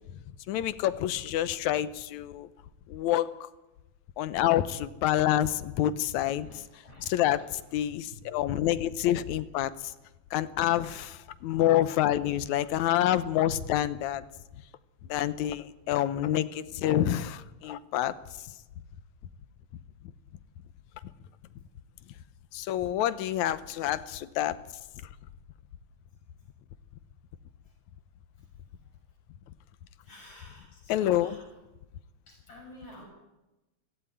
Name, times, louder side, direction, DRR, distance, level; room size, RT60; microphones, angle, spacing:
voice 1, 0.5-2.5 2.9-3.5 4.2-9.9 10.3-11.1 11.4-14.2 15.1-18.2 18.4-18.6 22.5-24.6 30.9-31.4, left 12 dB, 80° left, 14 dB, 2.2 m, -27 dB
voice 2, 30.0-31.4 32.3-33.1, left 1 dB, 50° left, -1 dB, 7.9 m, -49 dB
17.0 x 16.0 x 9.8 m, 1.0 s
omnidirectional pair, 3.4 m